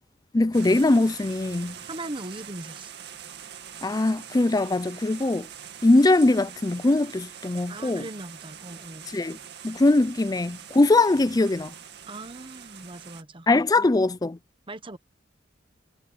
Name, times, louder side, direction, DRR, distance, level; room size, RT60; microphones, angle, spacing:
voice 1, 0.3-1.8 3.8-5.5 5.8-8.0 9.1-9.4 9.6-11.7 13.5-14.4, left 2 dB, 20° left, 0.4 m, -21 dB
sound 1, 0.5-13.2, right 8 dB, 60° right, 2.3 m, -44 dB
voice 2, 1.9-2.9 7.7-9.1 12.1-13.5 13.8-13.9 14.7-15.0, right 2 dB, 25° right, 1.3 m, -39 dB
head